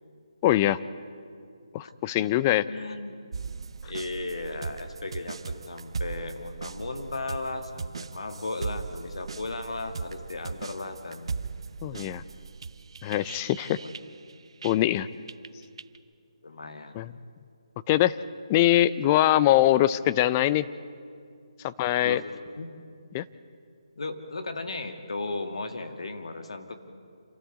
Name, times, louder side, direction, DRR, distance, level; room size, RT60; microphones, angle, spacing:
voice 1, 0.4-0.8 1.7-2.6 11.8-12.2 13.0-13.8 14.6-15.1 17.0-17.1 17.9-18.2 18.5-20.7 21.6-22.2 23.1-23.2, left 14 dB, 20° left, 16 dB, 0.4 m, -22 dB
voice 2, 2.7-3.1 3.9-11.3 11.9-12.1 13.8-14.0 16.4-17.0 22.0-22.3 22.6-22.7 24.0-26.7, left 3 dB, 70° left, 7 dB, 2.0 m, -36 dB
sound 1, 3.3-15.0 15.3-16.0, right 4 dB, 55° right, 0.7 m, -38 dB
28.0 x 13.5 x 8.1 m, 2.3 s
figure-of-eight pair, 160°, 3 cm